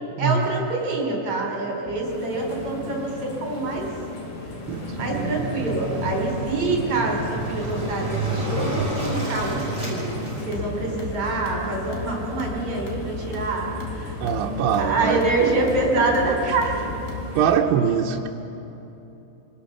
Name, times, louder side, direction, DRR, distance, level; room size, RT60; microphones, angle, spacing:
voice 1, 0.2-3.9 4.9-10.0 10.5-14.2 14.8-16.8, right 2 dB, 30° right, -1 dB, 4.9 m, -26 dB
sound 1, 1.9-17.5, left 3 dB, 50° left, 3.5 m, -37 dB
sound 2, 2.0-17.6, left 3 dB, 80° left, 5.4 m, -37 dB
Waves surf, 4.6-10.4, right 2 dB, 15° right, 5.9 m, -29 dB
voice 2, 4.7-5.4 14.2-15.2 17.4-18.3, right 8 dB, 85° right, 0 dB, 3.3 m, -23 dB
28.0 x 19.0 x 5.8 m, 2.9 s
omnidirectional pair, 5.4 m